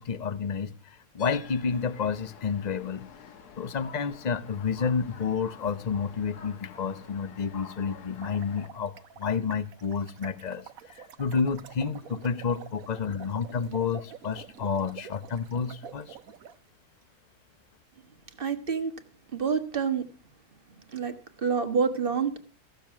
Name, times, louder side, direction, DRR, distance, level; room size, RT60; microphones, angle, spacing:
voice 1, 0.0-3.1 3.6-8.9 9.2-10.6 11.0-16.2, left 6 dB, 35° left, 0.7 m, -30 dB
sound 1, 1.2-8.7, left 6 dB, 90° left, 1.6 m, -48 dB
sound 2, 8.0-16.5, right 7 dB, 65° right, 1.3 m, -47 dB
voice 2, 18.4-18.9 19.3-20.1 20.9-21.1 21.4-22.4, right 6 dB, 35° right, 1.6 m, -27 dB
15.0 x 7.0 x 6.0 m
omnidirectional pair, 1.6 m